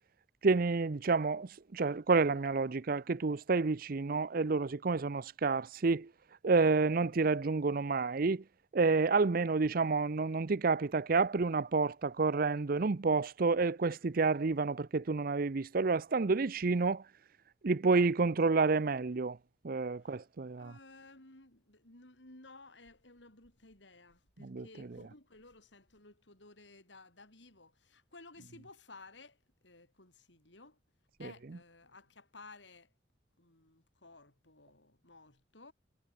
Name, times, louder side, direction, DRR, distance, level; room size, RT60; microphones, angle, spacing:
voice 1, 0.4-6.1 6.4-8.4 8.7-17.0 17.6-19.4 19.6-20.7 24.4-25.0 31.2-31.3, right 4 dB, 50° right, 0.6 m, -29 dB
voice 2, 20.6-29.4 29.6-30.8 31.2-32.9 33.4-35.7, left 3 dB, 80° left, 6.1 m, -56 dB
head